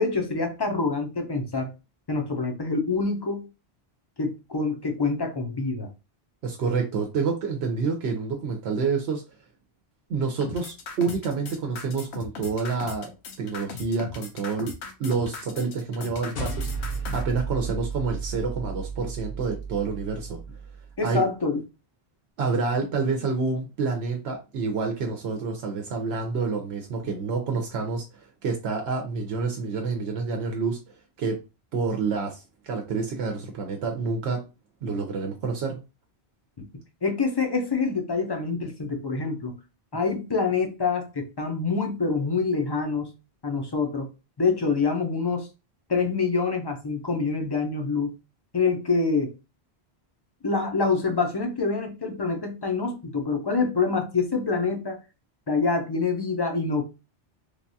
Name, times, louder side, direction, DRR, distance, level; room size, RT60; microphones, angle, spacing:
voice 1, 0.0-1.7 2.1-3.5 4.2-5.9 21.0-21.6 37.0-39.6 39.9-43.1 43.4-44.1 44.4-45.5 45.9-48.1 48.5-49.3 50.4-55.0 55.5-56.8, left 4 dB, 30° left, 0.5 m, -26 dB
voice 2, 6.4-9.2 10.1-13.1 13.4-14.7 15.0-20.4 21.0-21.2 22.4-31.4 31.7-34.4 34.8-35.8, right 4 dB, 80° right, 0.8 m, -28 dB
sound 1, 10.4-17.2, left 5 dB, 90° left, 0.9 m, -38 dB
sound 2, 16.3-21.0, right 4 dB, 60° left, 0.8 m, -33 dB
3.2 x 2.3 x 2.6 m
omnidirectional pair, 1.1 m